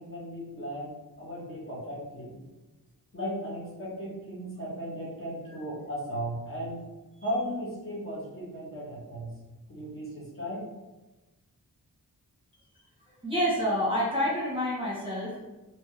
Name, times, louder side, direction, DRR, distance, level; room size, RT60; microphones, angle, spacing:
voice 1, 0.0-2.4 3.1-6.8 7.2-9.3 9.7-10.6, equal, 35° left, -6 dB, 1.1 m, -36 dB
voice 2, 13.2-15.4, equal, 15° right, -7 dB, 1.4 m, -28 dB
3.4 x 2.7 x 3.3 m, 1.1 s
wide cardioid pair, 100°, 37 cm